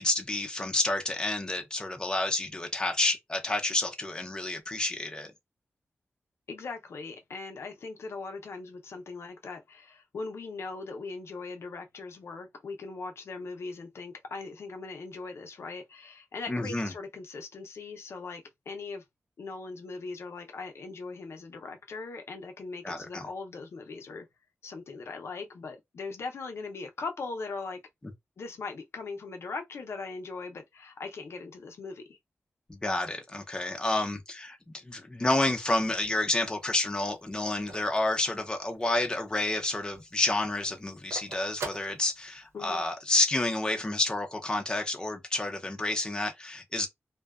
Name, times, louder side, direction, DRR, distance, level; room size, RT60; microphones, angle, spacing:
voice 1, 0.0-5.3 16.5-16.9 22.8-23.2 32.7-34.6 34.8-46.9, left 2 dB, 20° left, 0.5 m, -29 dB
voice 2, 6.5-19.0 19.4-24.3 24.6-27.8 28.4-32.2 42.5-42.8, left 4 dB, 70° left, 0.5 m, -40 dB
Telephone, 35.7-39.1 39.5-39.6 39.8-42.7, right 3 dB, 90° right, 0.6 m, -43 dB
2.6 x 2.2 x 2.3 m
wide cardioid pair, 120°, 5 cm